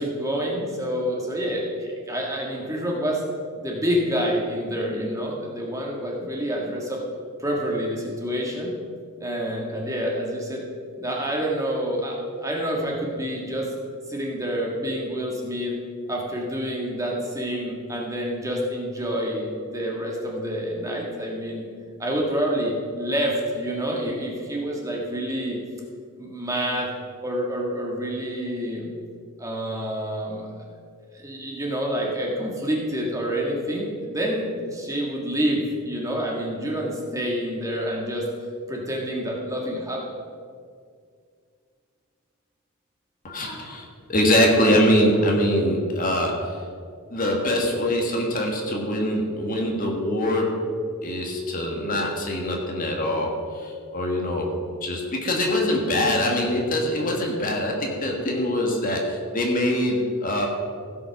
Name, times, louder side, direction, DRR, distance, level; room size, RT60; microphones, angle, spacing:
voice 1, 0.0-3.2 3.6-7.0 7.4-8.7 9.2-10.6 11.0-12.2 12.4-13.7 14.1-15.8 16.1-21.7 22.0-25.6 26.2-26.9 27.2-28.9 29.4-30.6 31.1-38.3 38.7-40.0, equal, 15° right, -2 dB, 1.5 m, -28 dB
voice 2, 43.2-46.6 47.1-50.6 51.0-54.5 54.8-60.5, left 1 dB, 40° left, 0 dB, 1.5 m, -23 dB
16.0 x 5.4 x 5.8 m, 2.2 s
head